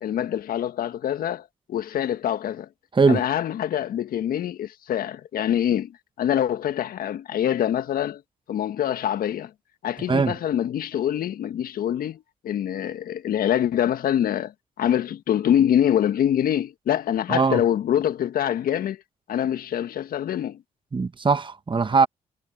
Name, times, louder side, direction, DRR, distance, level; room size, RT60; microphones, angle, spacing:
voice 1, 0.0-2.7 3.1-5.9 6.2-8.2 8.5-9.5 9.8-14.5 14.8-19.0 19.3-20.6, left 10 dB, 65° left, 1.7 m, -25 dB
voice 2, 2.9-3.3 10.1-10.4 17.3-17.6 20.9-22.1, right 4 dB, 30° right, 1.4 m, -20 dB
hypercardioid pair, 50°, 16 cm